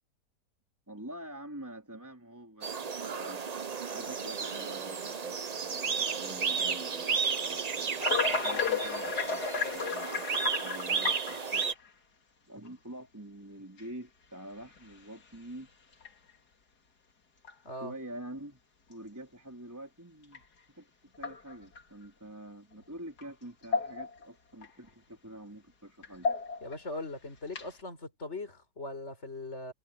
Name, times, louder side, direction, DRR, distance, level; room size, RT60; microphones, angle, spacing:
voice 1, 0.9-3.4 3.9-8.0 8.3-11.6 12.5-15.7 17.8-18.6 18.9-20.4 20.7-26.3, right 1 dB, 10° right, 3.7 m, -46 dB
sound 1, 2.6-11.7, right 6 dB, 45° right, 0.5 m, -33 dB
sound 2, 8.0-11.9 12.6-12.7 13.8-13.9 14.6-14.9 15.3-15.4 15.9-16.1 17.4-17.5 20.3-20.4 21.1-21.8 23.2-23.3 23.6-24.2 24.6-24.7 26.0-26.8 27.5-27.8, left 5 dB, 65° left, 3.0 m, -33 dB
voice 2, 26.6-29.7, left 2 dB, 40° left, 5.4 m, -40 dB
omnidirectional pair, 1.8 m